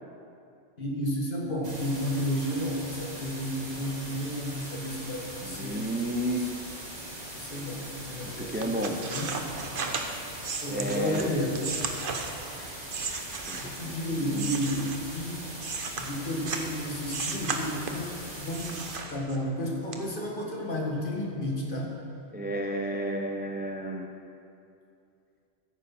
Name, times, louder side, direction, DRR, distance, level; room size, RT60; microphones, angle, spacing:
voice 1, 0.8-5.9 6.4-6.5 7.3-9.3 10.6-11.6 13.6-15.4 16.0-18.8 19.1-22.0, equal, 45° left, -2 dB, 2.0 m, -32 dB
sound 1, 1.6-19.0, right 1 dB, 35° right, 2.3 m, -41 dB
voice 2, 5.4-6.5 8.2-9.0 10.7-11.3 13.5-14.6 22.3-24.1, right 1 dB, 15° right, 2 dB, 0.4 m, -32 dB
sound 2, 8.6-13.9 14.3-16.7 17.1-18.1 18.5-19.6 19.9-20.0, right 4 dB, 50° right, 1.0 m, -35 dB
15.5 x 9.5 x 4.3 m, 2.5 s
omnidirectional pair, 1.3 m